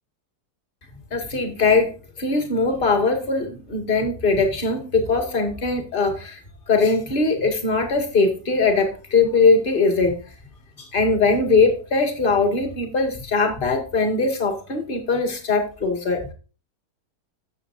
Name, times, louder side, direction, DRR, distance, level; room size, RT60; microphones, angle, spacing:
voice 1, 1.1-1.9 2.2-6.4 6.7-10.2 10.8-16.3, left 4 dB, 30° left, 6 dB, 2.0 m, -21 dB
14.0 x 7.1 x 2.6 m, 0.34 s
omnidirectional pair, 1.8 m